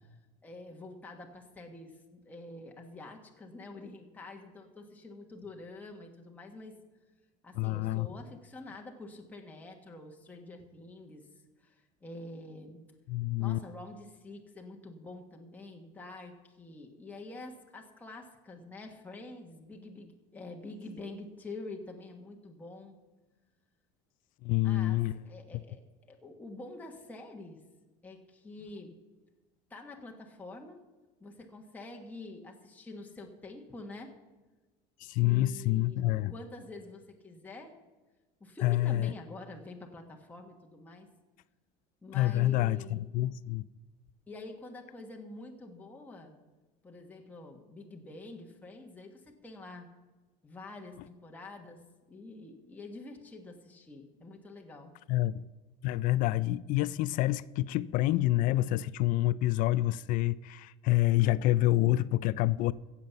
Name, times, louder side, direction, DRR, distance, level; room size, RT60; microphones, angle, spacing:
voice 1, 0.4-6.8 7.4-11.3 11.6-12.8 13.4-22.9 24.6-25.8 26.1-27.6 28.0-29.0 29.7-30.8 31.2-34.1 35.2-37.7 38.4-41.1 42.0-43.0 44.3-46.3 46.8-49.9 50.4-51.8 52.1-54.9, left 2 dB, 10° left, 1.4 m, -47 dB
voice 2, 7.6-8.1 13.1-13.6 24.4-25.1 35.0-36.3 38.6-39.1 42.1-43.6 55.1-55.4 55.8-62.7, left 16 dB, 55° left, 0.4 m, -27 dB
15.5 x 7.3 x 6.9 m
cardioid pair, 145°, 17 cm